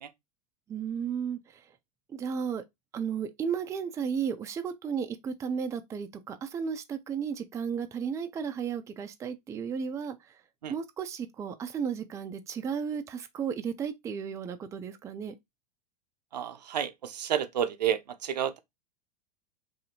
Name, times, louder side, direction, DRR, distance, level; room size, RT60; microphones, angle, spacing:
voice 1, 0.7-1.6 2.1-2.6 2.9-10.2 10.7-15.3, right 7 dB, 15° right, 0.3 m, -34 dB
voice 2, 16.3-18.6, right 9 dB, 80° right, 0.5 m, -30 dB
2.7 x 2.6 x 2.7 m
hypercardioid pair, 95°, 21 cm